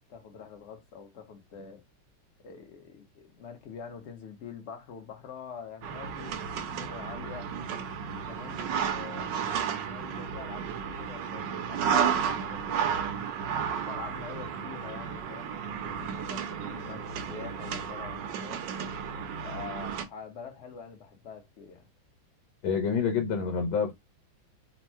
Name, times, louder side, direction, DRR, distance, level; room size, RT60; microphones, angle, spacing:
voice 1, 0.1-1.8 2.4-7.5 8.1-9.3 9.9-13.2 13.8-18.8 19.4-21.9, left 6 dB, 50° left, 0.9 m, -45 dB
sound 1, 5.8-20.0, right 7 dB, 70° right, 1.2 m, -33 dB
voice 2, 22.6-23.9, left 6 dB, 85° left, 1.5 m, -27 dB
3.5 x 2.1 x 4.3 m
omnidirectional pair, 2.1 m